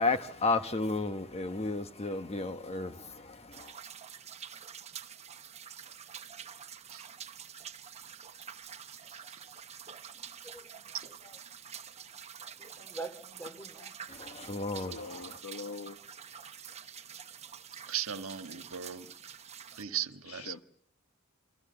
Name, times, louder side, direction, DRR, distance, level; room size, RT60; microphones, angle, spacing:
voice 1, 0.0-3.8 14.1-15.4, left 3 dB, 30° left, 1.1 m, -33 dB
sound 1, 3.5-19.8, right 8 dB, 30° right, 1.1 m, -47 dB
voice 2, 10.1-10.8 12.6-13.9, right 3 dB, 10° left, 2.6 m, -45 dB
voice 3, 14.8-16.0 20.3-20.6, left 4 dB, 85° left, 1.3 m, -43 dB
voice 4, 17.9-19.1 19.7-20.5, right 9 dB, 65° right, 1.6 m, -37 dB
29.0 x 23.0 x 6.9 m
head